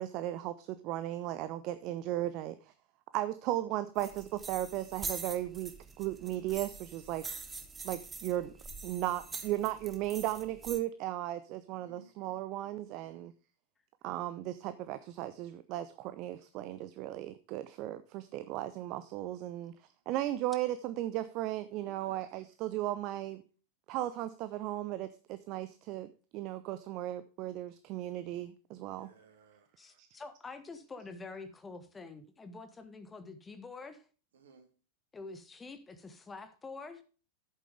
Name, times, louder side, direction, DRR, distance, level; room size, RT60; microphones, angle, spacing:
voice 1, 0.0-2.7 3.1-7.3 7.8-8.5 8.8-13.3 14.0-23.4 23.9-29.1 30.0-30.1, right 14 dB, 40° right, 0.7 m, -36 dB
sound 1, 4.0-10.8, right 4 dB, 15° right, 1.4 m, -44 dB
voice 2, 11.7-12.1 13.0-13.3 21.8-22.2 28.9-29.7 34.3-34.7, right 5 dB, 60° right, 2.5 m, -58 dB
voice 3, 29.8-34.0 35.1-37.0, left 3 dB, 15° left, 1.3 m, -47 dB
11.0 x 8.4 x 3.4 m
figure-of-eight pair, 90°, 0 cm